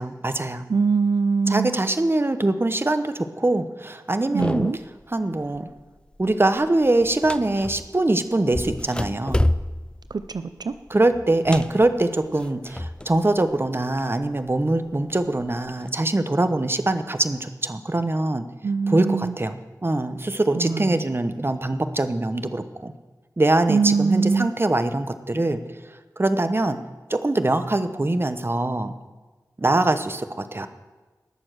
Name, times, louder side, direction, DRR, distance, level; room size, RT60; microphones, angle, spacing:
voice 1, 0.0-0.7 1.5-4.7 5.1-5.7 6.2-9.4 10.9-18.4 18.9-19.6 19.8-22.9 23.4-25.6 26.2-26.8 27.1-28.9 29.6-30.7, right 2 dB, 35° right, 10 dB, 0.9 m, -23 dB
voice 2, 0.7-1.8 4.3-4.8 10.1-10.7 18.6-19.4 20.5-21.0 23.7-24.5, right 4 dB, 80° right, 11 dB, 0.5 m, -22 dB
sound 1, 4.4-5.0 5.4-5.8 6.1-8.0 8.5-13.2 13.5-14.5 15.1-15.9, left 1 dB, 15° left, 0.4 m, -29 dB
19.5 x 7.0 x 6.4 m, 1.3 s
wide cardioid pair, 65°, 7 cm